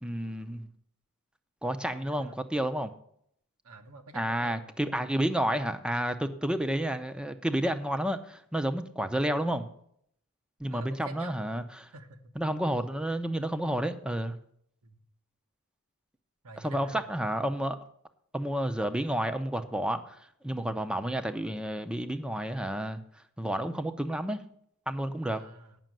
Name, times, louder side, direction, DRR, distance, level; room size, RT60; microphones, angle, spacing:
voice 1, 0.0-0.7 1.6-2.9 4.1-9.7 10.6-11.9 12.4-14.3 16.6-17.8 18.3-20.2 20.4-23.0 23.4-24.4 24.9-25.4, right 1 dB, 5° right, 9 dB, 0.6 m, -30 dB
voice 2, 1.9-2.3 3.6-4.7 10.7-11.4 11.9-12.3 14.8-15.0 16.4-17.1 25.2-25.8, right 2 dB, 75° right, 6 dB, 1.3 m, -48 dB
9.0 x 6.3 x 7.6 m, 0.68 s
head